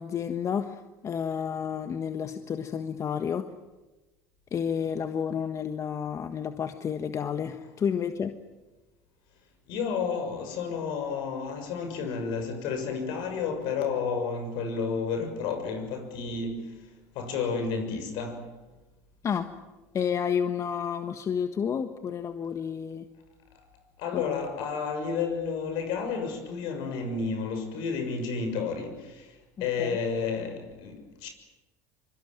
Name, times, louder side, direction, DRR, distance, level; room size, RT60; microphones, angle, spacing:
voice 1, 0.0-3.4 4.5-8.3 19.2-19.5 19.9-23.1 24.1-24.4 29.6-30.0, left 7 dB, 40° left, 1.5 m, -30 dB
voice 2, 9.7-18.5 23.5-23.6 24.0-31.3, left 5 dB, 70° left, 6.7 m, -31 dB
25.0 x 23.5 x 9.3 m
hypercardioid pair, 85°, 8 cm